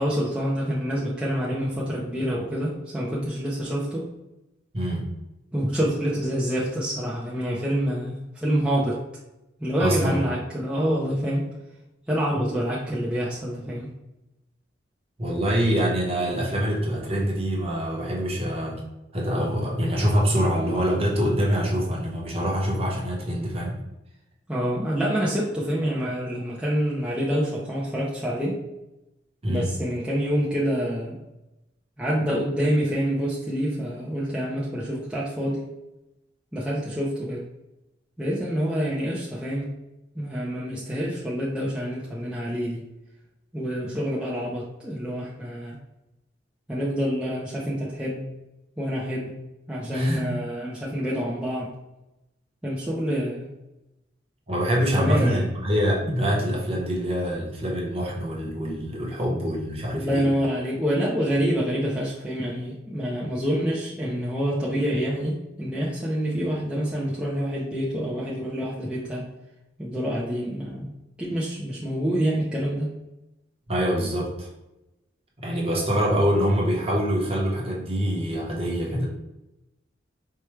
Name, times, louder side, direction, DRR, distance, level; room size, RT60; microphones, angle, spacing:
voice 1, 0.0-4.1 5.5-9.0 9.6-11.5 12.1-13.9 24.5-28.6 29.5-31.2 32.0-35.6 36.5-37.5 38.2-39.7 40.1-42.9 43.5-45.8 46.7-48.3 48.8-49.4 49.7-51.7 52.6-53.5 55.0-55.5 59.9-69.3 69.8-70.9 71.2-72.9, equal, 5° right, -7 dB, 0.5 m, -27 dB
voice 2, 4.7-5.1 9.8-10.2 15.2-18.8 19.1-23.8 29.4-29.7 49.8-50.3 54.5-60.3 73.7-74.5 75.4-79.1, equal, 30° right, -3 dB, 0.8 m, -25 dB
4.5 x 2.2 x 3.1 m, 0.95 s
head